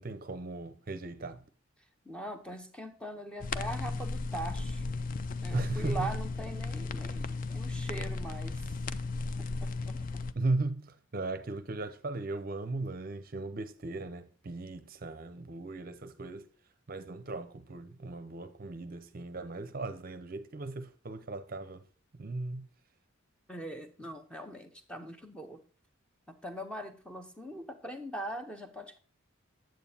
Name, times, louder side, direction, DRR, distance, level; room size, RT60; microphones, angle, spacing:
voice 1, 0.0-1.4 5.5-6.1 10.3-16.5 16.9-21.8 22.2-22.6, right 2 dB, 45° right, 0.6 m, -37 dB
voice 2, 2.1-4.8 5.4-8.8 9.4-10.2 23.5-25.6 26.3-29.0, right 1 dB, 5° left, 0.7 m, -41 dB
sound 1, 3.4-10.3, left 3 dB, 40° left, 0.4 m, -35 dB
9.0 x 7.7 x 2.7 m
head